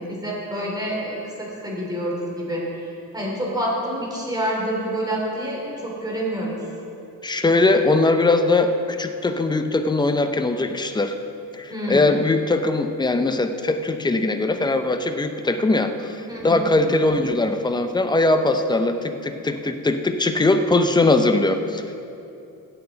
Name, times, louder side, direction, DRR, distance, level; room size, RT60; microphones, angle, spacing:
voice 1, 0.0-6.6 11.7-12.2 16.3-16.7, equal, 10° right, -3 dB, 2.8 m, -28 dB
voice 2, 7.2-11.2 11.5-22.0, left 2 dB, 15° left, 7 dB, 0.6 m, -21 dB
16.5 x 8.1 x 3.9 m, 2.7 s
cardioid pair, 125°, 33 cm